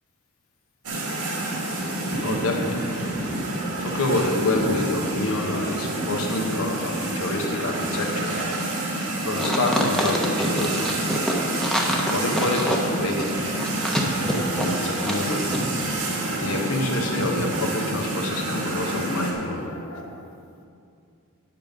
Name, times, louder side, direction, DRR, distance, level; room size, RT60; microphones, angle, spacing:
sound 1, 0.8-19.3, right 2 dB, 80° right, 1.9 m, -28 dB
voice 1, 2.2-3.0 3.8-8.4 9.2-11.0 12.1-13.4 14.5-15.5 16.4-20.3, left 2 dB, 75° left, 2 dB, 1.2 m, -27 dB
sound 2, 9.4-15.2 15.5-15.6, equal, ahead, 0.8 m, -26 dB
9.2 x 7.4 x 5.2 m, 2.4 s
head